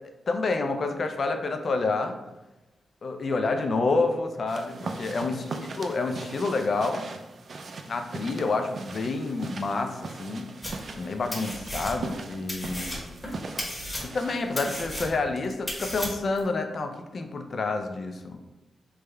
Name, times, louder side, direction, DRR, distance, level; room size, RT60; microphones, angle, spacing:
voice 1, 0.3-2.2 3.0-5.4 5.8-7.1 7.9-10.5 10.9-13.1 14.0-18.4, left 3 dB, 55° left, 5 dB, 0.4 m, -28 dB
sound 1, 4.5-15.2, right 3 dB, 55° right, 0.3 m, -40 dB
sound 2, 10.6-11.0 11.3-12.2 12.5-16.4, equal, 5° left, 0.9 m, -35 dB
3.4 x 2.1 x 3.4 m, 1.0 s
cardioid pair, 85°, 0 cm